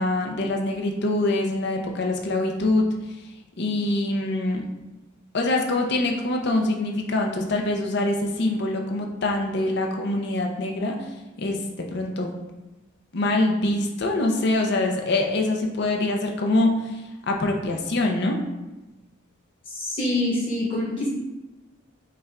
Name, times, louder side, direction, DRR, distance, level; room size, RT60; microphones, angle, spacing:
voice 1, 0.0-2.8 3.6-4.6 5.3-11.0 11.4-12.4 13.1-17.0 17.3-18.4, left 2 dB, 55° left, 2 dB, 0.5 m, -24 dB
voice 2, 19.7-21.1, left 1 dB, 25° left, -7 dB, 1.4 m, -25 dB
5.5 x 2.2 x 3.6 m, 1.1 s
head